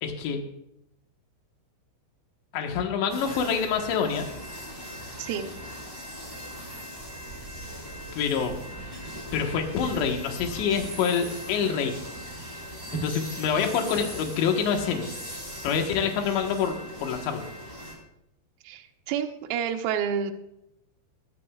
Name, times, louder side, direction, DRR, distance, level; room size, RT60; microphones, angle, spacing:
voice 1, 0.0-0.4 2.5-4.3 8.1-8.6 9.3-11.9 12.9-15.1 15.6-17.5, left 6 dB, 70° left, 3 dB, 3.5 m, -26 dB
sound 1, 3.1-18.0, equal, 10° left, 2.9 m, -40 dB
voice 2, 5.2-5.5 12.9-13.1 18.6-20.3, right 8 dB, 80° right, 3 dB, 2.1 m, -29 dB
21.0 x 12.0 x 2.4 m, 0.82 s
omnidirectional pair, 5.6 m